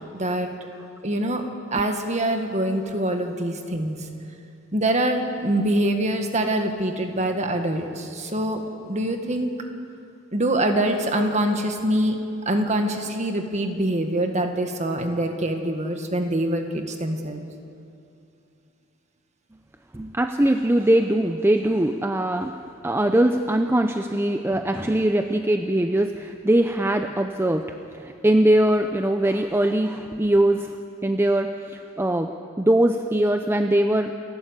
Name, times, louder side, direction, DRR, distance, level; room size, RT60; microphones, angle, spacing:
voice 1, 0.1-0.5 1.0-1.5 1.7-4.1 4.7-9.5 10.3-12.2 12.5-17.4, right 1 dB, 35° right, 5 dB, 1.7 m, -24 dB
voice 2, 19.9-22.6 22.8-30.8 31.0-34.1, right 1 dB, 10° right, 6 dB, 0.5 m, -21 dB
28.5 x 12.0 x 8.2 m, 2.6 s
head